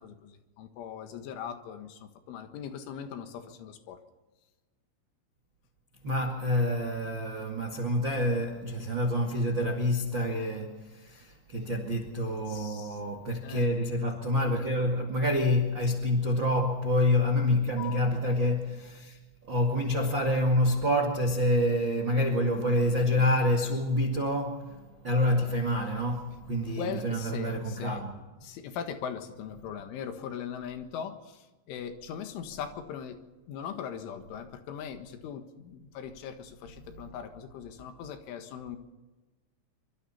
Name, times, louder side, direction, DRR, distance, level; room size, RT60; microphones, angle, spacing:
voice 1, 0.0-4.0 12.5-13.0 13.4-13.7 17.8-18.1 26.8-28.0 28.4-33.2 33.5-38.8, left 8 dB, 75° left, 3.9 m, -40 dB
voice 2, 6.0-28.1 36.8-37.0, left 1 dB, 50° right, 1.4 m, -27 dB
26.0 x 24.5 x 4.3 m
omnidirectional pair, 5.7 m